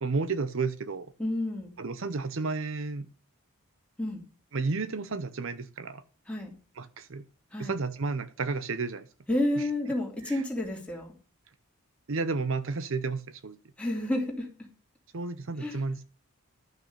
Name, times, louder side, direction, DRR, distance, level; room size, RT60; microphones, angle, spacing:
voice 1, 0.0-1.1 1.8-3.1 4.5-6.0 6.8-7.2 7.6-9.1 9.6-9.7 10.2-10.4 12.1-13.6 15.1-16.0, right 4 dB, 60° right, 13 dB, 0.7 m, -32 dB
voice 2, 1.2-1.7 4.0-4.2 6.3-6.5 7.5-7.8 9.3-11.1 13.8-14.5 15.6-15.8, left 1 dB, 5° left, -1 dB, 2.8 m, -30 dB
12.0 x 6.1 x 6.6 m, 0.36 s
head